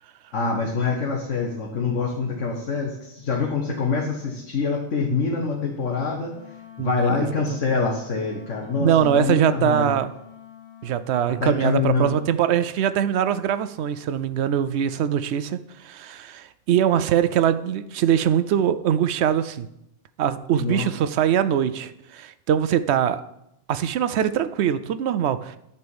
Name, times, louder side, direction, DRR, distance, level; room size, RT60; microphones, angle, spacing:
voice 1, 0.3-6.3 6.8-9.9 11.4-12.1 20.6-20.9, left 4 dB, 85° left, 0 dB, 1.4 m, -25 dB
Wind instrument woodwind instrument, 6.2-11.1, left 10 dB, 25° right, 3.5 m, -46 dB
voice 2, 6.8-7.3 8.8-10.1 10.8-19.7 20.2-23.2 23.7-25.6, right 9 dB, 70° right, 13 dB, 0.8 m, -22 dB
9.6 x 4.3 x 7.0 m, 0.82 s
omnidirectional pair, 1.2 m